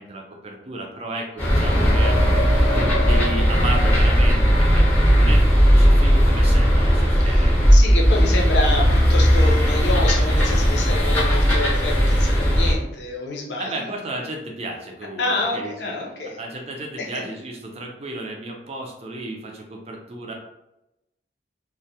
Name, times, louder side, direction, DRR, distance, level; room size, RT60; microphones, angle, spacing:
voice 1, 0.0-2.2 3.0-7.7 13.6-15.7 16.2-20.3, right 2 dB, 35° right, 1 dB, 0.4 m, -33 dB
sound 1, 1.4-12.7, equal, 10° left, 0.7 m, -17 dB
voice 2, 7.7-13.8 15.2-16.4 17.0-17.2, left 2 dB, 75° left, 0 dB, 0.5 m, -27 dB
2.2 x 2.1 x 2.7 m, 0.89 s
head